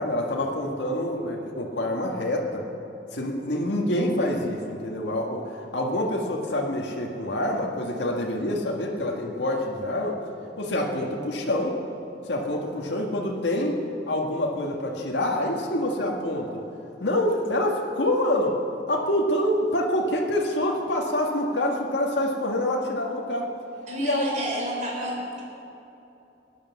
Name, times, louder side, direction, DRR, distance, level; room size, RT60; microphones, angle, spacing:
voice 1, 0.0-2.6 3.1-10.2 10.6-11.7 12.3-13.8 14.1-16.6 17.0-18.6 18.9-23.5 24.0-24.4, left 1 dB, 80° left, -1 dB, 1.8 m, -26 dB
voice 2, 23.9-25.4, equal, 40° right, -2 dB, 4.2 m, -30 dB
18.5 x 10.5 x 7.3 m, 2.9 s
head